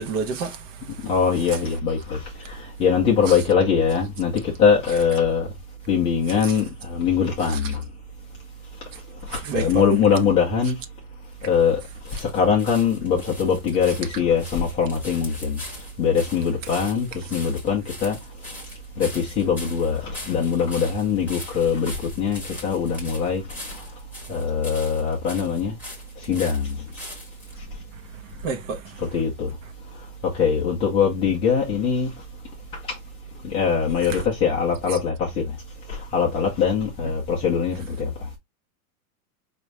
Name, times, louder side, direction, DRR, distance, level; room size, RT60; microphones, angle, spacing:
voice 1, 0.0-1.1 3.3-3.4 6.4-6.6 7.5-7.6 8.9-9.0 9.3-9.8 28.3-29.0 34.1-34.2 34.9-35.0 37.0-37.1, right 5 dB, 60° right, 1.1 m, -31 dB
voice 2, 1.0-5.5 5.9-7.8 9.3-10.8 11.4-11.8 12.1-15.6 16.0-18.2 19.0-23.8 24.3-25.7 26.2-26.8 29.1-29.5 30.2-32.1 33.4-35.6 35.9-38.3, left 6 dB, 15° left, 0.4 m, -22 dB
sound 1, 11.0-27.6 28.3-28.4, left 1 dB, 5° right, 1.0 m, -41 dB
4.9 x 2.7 x 3.1 m
supercardioid pair, 170°, 44 cm